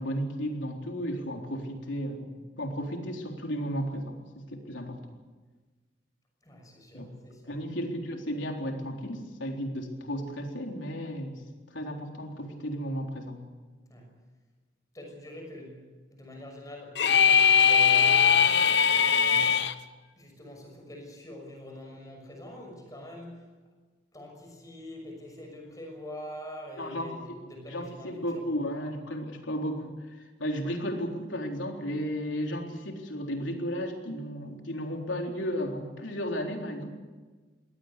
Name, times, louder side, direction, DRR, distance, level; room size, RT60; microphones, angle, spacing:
voice 1, 0.0-4.2 4.5-5.0 6.9-7.1 7.5-11.4 11.7-13.4 26.8-27.1 27.7-36.9, equal, 80° left, 2 dB, 3.8 m, -34 dB
voice 2, 6.4-7.6 13.9-14.1 14.9-15.8 16.1-18.3 19.1-19.6 20.2-23.5 24.1-28.4, equal, 20° left, 2 dB, 6.1 m, -44 dB
sound 1, 16.9-19.7, left 7 dB, 65° left, 0.9 m, -20 dB
22.5 x 17.5 x 8.3 m, 1.3 s
head